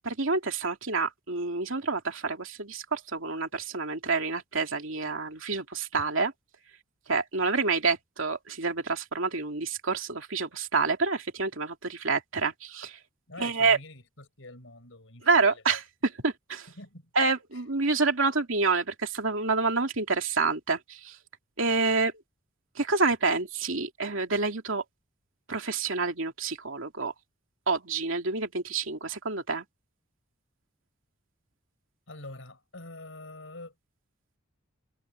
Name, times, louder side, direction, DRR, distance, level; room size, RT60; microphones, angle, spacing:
voice 1, 0.0-6.3 7.1-13.0 13.4-13.8 15.3-15.8 16.2-16.7 17.2-21.2 21.6-22.1 22.8-24.8 25.5-27.1 27.7-29.6, right 4 dB, 65° right, 2.9 m, -28 dB
voice 2, 13.3-15.8 16.5-17.1 17.5-17.6 32.1-33.7, left 2 dB, 65° left, 7.0 m, -46 dB
head